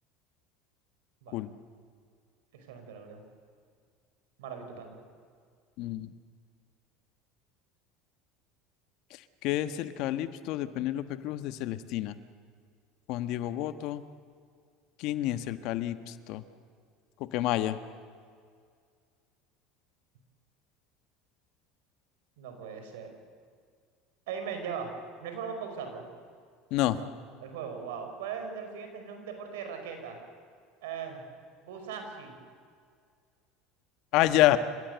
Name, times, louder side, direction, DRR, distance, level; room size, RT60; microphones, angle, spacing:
voice 1, 2.5-3.2 4.4-5.0 22.4-23.1 24.3-24.9 25.2-26.0 27.4-30.2 30.8-31.2 31.6-32.3, right 6 dB, 80° right, 5 dB, 5.2 m, -39 dB
voice 2, 5.8-6.1 9.4-12.2 13.1-14.0 15.0-16.4 17.3-17.8 26.7-27.0 34.1-34.6, left 14 dB, 65° left, 11 dB, 1.3 m, -28 dB
28.5 x 16.0 x 8.1 m, 2.1 s
supercardioid pair, 95°, 0 cm